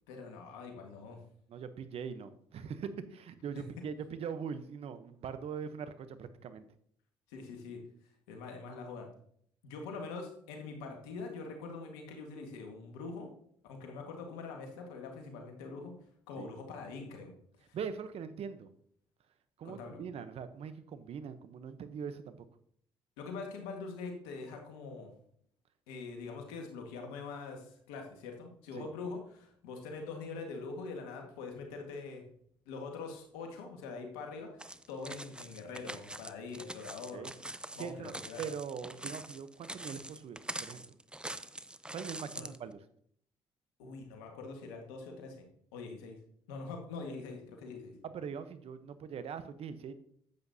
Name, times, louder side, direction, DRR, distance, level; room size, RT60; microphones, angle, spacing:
voice 1, 0.1-1.2 3.6-3.7 7.3-7.8 8.3-9.1 9.6-13.3 13.7-15.9 16.3-17.3 17.7-17.8 19.6-20.0 23.2-25.1 25.9-32.2 32.7-34.5 34.9-37.3 37.8-38.4 42.3-42.5 43.8-45.5 45.7-46.2 46.5-47.9, left 4 dB, 90° left, 3 dB, 1.7 m, -43 dB
voice 2, 1.5-6.6 16.4-16.5 17.7-18.7 19.6-22.4 28.7-28.9 37.1-37.3 37.8-38.1 38.4-41.0 41.9-42.8 48.0-49.9, right 7 dB, 60° right, 12 dB, 0.9 m, -42 dB
sound 1, 34.6-42.6, right 1 dB, 10° right, 0.6 m, -44 dB
10.5 x 8.0 x 2.8 m, 0.65 s
hypercardioid pair, 55°, 11 cm